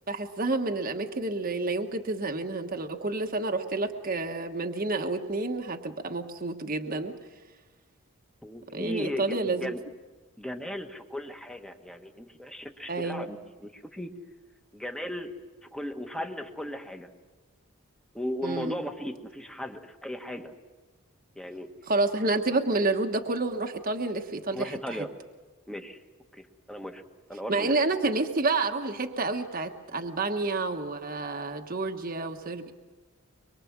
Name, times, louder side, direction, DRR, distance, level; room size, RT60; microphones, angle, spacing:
voice 1, 0.1-7.1 8.7-9.7 12.9-13.3 18.4-18.8 21.9-25.1 27.5-32.7, right 3 dB, 40° right, 4 dB, 1.3 m, -29 dB
voice 2, 8.4-9.8 10.4-14.1 14.7-15.3 15.6-17.1 18.1-20.5 21.3-21.7 24.5-25.1 25.7-26.0 26.3-27.0 27.3-27.8, equal, 5° left, 5 dB, 1.4 m, -36 dB
24.0 x 23.5 x 7.4 m, 1.3 s
head